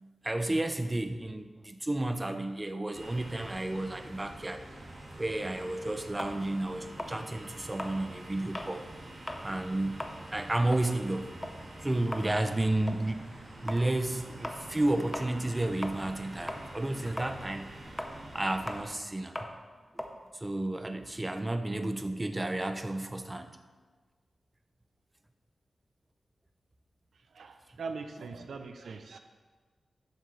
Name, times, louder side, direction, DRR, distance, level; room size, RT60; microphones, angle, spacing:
voice 1, 0.2-4.6 5.2-8.9 9.4-10.1 10.3-11.3 11.8-13.3 13.6-17.7 18.3-19.4 20.3-23.5, right 1 dB, 20° right, 8 dB, 0.6 m, -32 dB
sound 1, 2.9-18.8, right 1 dB, 45° right, 1.8 m, -46 dB
sound 2, 6.2-8.8 9.2-9.5 9.8-16.2 16.5-21.3, left 1 dB, 15° left, 0.7 m, -41 dB
voice 2, 27.3-29.2, right 4 dB, 85° right, 7 dB, 0.6 m, -41 dB
12.5 x 7.3 x 3.3 m, 1.4 s
wide cardioid pair, 120°, 0 cm